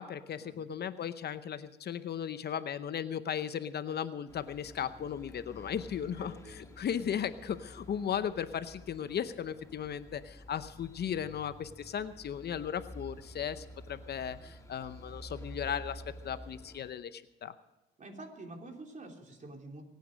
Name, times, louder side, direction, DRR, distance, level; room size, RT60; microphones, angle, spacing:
voice 1, 0.0-17.5, left 8 dB, 55° left, 13 dB, 0.8 m, -36 dB
sound 1, 4.3-16.9, equal, 15° left, 1.8 m, -50 dB
voice 2, 6.1-6.8 18.0-19.8, right 2 dB, 40° right, 2 dB, 3.2 m, -48 dB
24.0 x 9.3 x 5.2 m, 1.0 s
cardioid pair, 90°, 20 cm